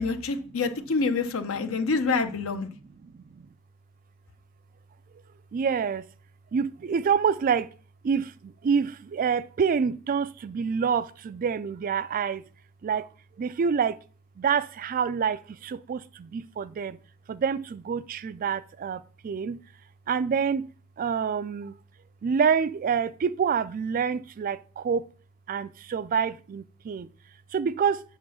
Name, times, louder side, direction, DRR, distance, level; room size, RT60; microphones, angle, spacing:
voice 1, 0.0-2.7, left 4 dB, 65° left, 0.8 m, -27 dB
voice 2, 3.0-3.4 5.5-6.0 6.5-7.7 8.0-12.4 12.8-13.1 13.4-14.0 14.4-17.0 17.3-19.6 20.1-20.7 21.0-21.7 22.2-25.1 25.5-27.1 27.5-28.0, right 6 dB, 40° right, 0.3 m, -27 dB
8.5 x 3.7 x 6.2 m
head